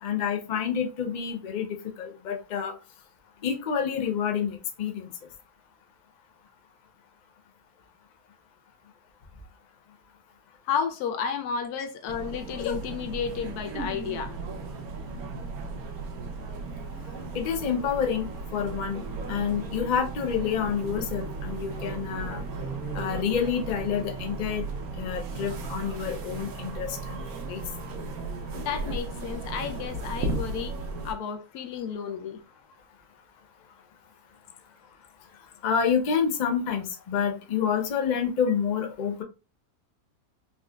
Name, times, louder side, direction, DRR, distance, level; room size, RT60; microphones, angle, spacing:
voice 1, 0.0-1.7 2.0-2.7 3.4-5.1 17.3-19.0 19.3-22.4 22.9-24.7 25.0-27.2 27.5-27.6 35.6-39.2, left 7 dB, 70° left, 0.4 m, -28 dB
voice 2, 10.6-14.3 24.5-24.6 28.5-30.7 31.0-32.4, left 7 dB, 85° left, 1.1 m, -32 dB
sound 1, 12.1-31.1, right 3 dB, 75° right, 1.1 m, -35 dB
4.0 x 2.4 x 2.2 m
omnidirectional pair, 1.6 m